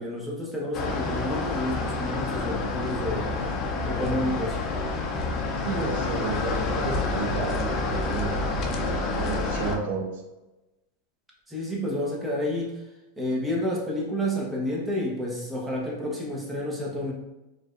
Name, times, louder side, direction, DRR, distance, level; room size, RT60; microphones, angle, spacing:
voice 1, 0.0-3.3 3.9-4.6 11.5-12.7 13.2-17.1, left 1 dB, 10° right, -3 dB, 1.2 m, -30 dB
sound 1, 0.7-9.8, left 3 dB, 40° left, 0.7 m, -28 dB
voice 2, 5.6-8.3 9.1-10.2, right 4 dB, 70° right, 1 dB, 1.0 m, -32 dB
4.4 x 3.2 x 2.6 m, 1.0 s
supercardioid pair, 125°, 0 cm